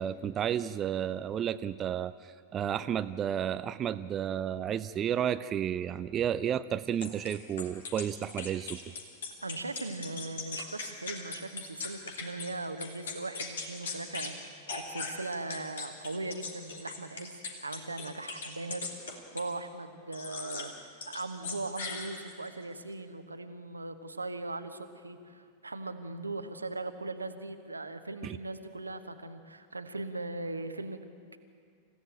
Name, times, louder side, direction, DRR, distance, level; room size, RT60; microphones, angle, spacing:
voice 1, 0.0-8.8 28.2-28.4, right 9 dB, 30° right, 12 dB, 0.5 m, -32 dB
sound 1, 7.0-12.5 12.8-14.3 14.7-19.5 20.1-20.7 21.0-22.5, left 4 dB, 65° left, 2.9 m, -40 dB
voice 2, 9.4-31.4, right 2 dB, 80° right, 8 dB, 1.3 m, -39 dB
27.0 x 16.0 x 8.8 m, 2.2 s
figure-of-eight pair, 90°, 0 cm